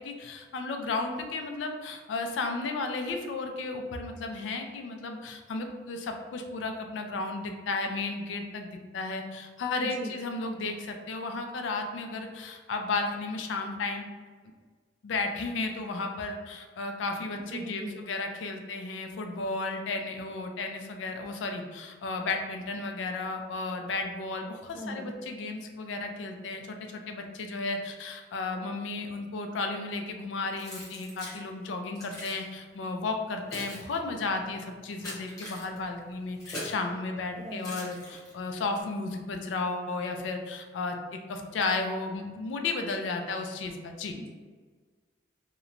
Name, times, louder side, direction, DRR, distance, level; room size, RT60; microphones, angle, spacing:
voice 1, 0.0-14.1 15.0-44.1, left 3 dB, 85° left, 5 dB, 0.3 m, -34 dB
voice 2, 9.8-10.1 17.5-18.0 24.7-25.1 37.4-37.6 44.1-44.3, right 1 dB, 30° right, -2 dB, 0.4 m, -38 dB
Keys jangling, 30.6-31.4 31.9-32.4 33.1-36.8 37.6-38.5, left 1 dB, 20° left, 0.8 m, -42 dB
2.8 x 2.1 x 2.5 m, 1.5 s
head